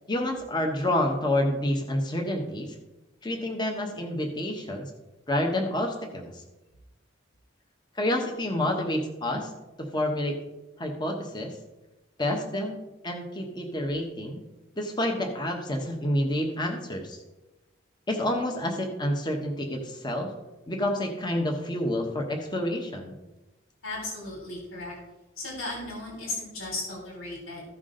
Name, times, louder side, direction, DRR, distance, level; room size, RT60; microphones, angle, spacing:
voice 1, 0.1-2.7 3.2-4.9 5.3-6.4 7.9-9.5 9.8-10.4 10.8-11.6 12.2-14.4 14.8-17.2 18.1-20.3 20.7-23.2, left 1 dB, 20° left, 3 dB, 1.1 m, -28 dB
voice 2, 23.8-24.9 25.4-27.6, left 2 dB, 85° left, -1 dB, 3.3 m, -35 dB
14.5 x 6.0 x 3.8 m, 1.0 s
head